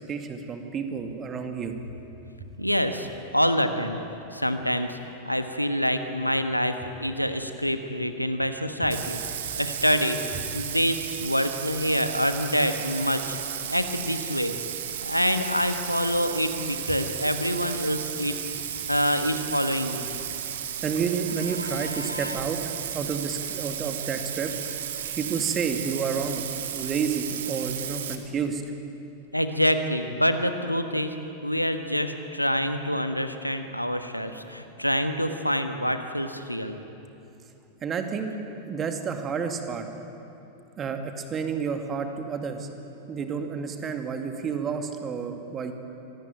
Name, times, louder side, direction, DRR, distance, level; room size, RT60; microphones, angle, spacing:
voice 1, 0.1-1.7 8.8-8.9 20.8-22.6 22.9-24.5 25.1-26.4 26.7-28.6 37.8-38.3 38.7-39.9 40.8-42.7 43.1-45.7, right 6 dB, 25° right, 6 dB, 2.3 m, -30 dB
voice 2, 2.6-3.1 3.3-4.0 4.3-5.0 5.2-9.2 9.6-13.4 13.7-14.6 15.0-18.4 18.9-20.0 21.7-22.4 29.3-31.2 31.4-36.8, equal, 90° left, 8 dB, 1.4 m, -26 dB
Bathtub (filling or washing), 8.9-28.2, right 9 dB, 60° right, 2.0 m, -34 dB
25.5 x 18.5 x 9.2 m, 2.8 s
figure-of-eight pair, 90°, 0 cm